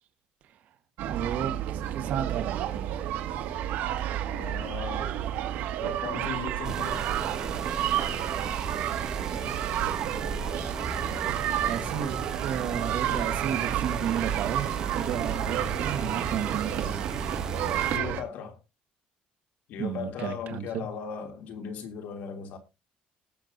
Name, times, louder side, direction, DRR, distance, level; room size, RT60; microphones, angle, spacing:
sound 1, 1.0-18.2, right 11 dB, 85° right, 2.1 m, -30 dB
voice 1, 1.1-3.0 3.3-3.5 11.6-17.3 19.8-20.9, right 8 dB, 65° right, 1.6 m, -33 dB
voice 2, 4.3-5.1 5.8-7.1 13.1-13.3 17.9-18.6 19.7-22.6, left 6 dB, 70° left, 3.0 m, -37 dB
sound 2, 6.6-18.0, right 4 dB, 20° right, 1.5 m, -36 dB
19.0 x 7.6 x 2.7 m
cardioid pair, 150°, 3 cm